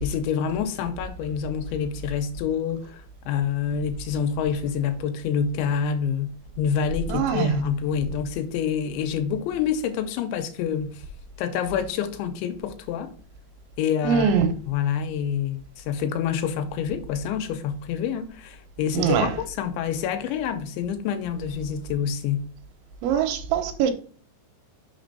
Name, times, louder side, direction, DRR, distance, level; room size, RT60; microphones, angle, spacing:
voice 1, 0.0-11.0 11.4-13.1 13.8-14.4 14.7-22.4, left 7 dB, 85° left, 2.9 m, -27 dB
voice 2, 7.1-7.6 14.0-14.5 18.9-19.3 23.0-23.9, right 7 dB, 90° right, 3.0 m, -22 dB
6.7 x 5.3 x 3.9 m
omnidirectional pair, 5.3 m